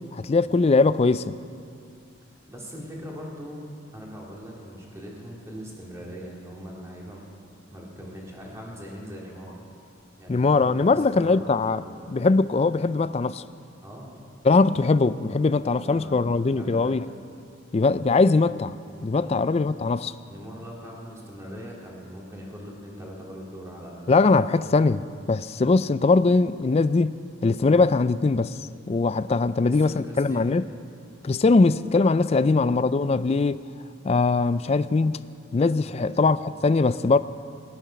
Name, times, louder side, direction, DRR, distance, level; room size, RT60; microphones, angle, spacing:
voice 1, 0.1-1.4 10.3-13.4 14.4-17.0 17.7-20.2 24.1-25.0 25.3-27.2 27.4-28.6 28.9-30.6 31.2-33.6 34.0-35.2 35.5-37.2, left 3 dB, 30° left, 0.3 m, -21 dB
voice 2, 2.5-3.6 3.9-7.2 7.7-9.6 10.2-12.1 13.8-14.2 15.7-17.0 19.1-19.5 20.3-24.1 29.5-30.6 32.3-32.6 35.8-36.2, equal, 15° right, 2.4 m, -41 dB
19.0 x 11.5 x 5.8 m
head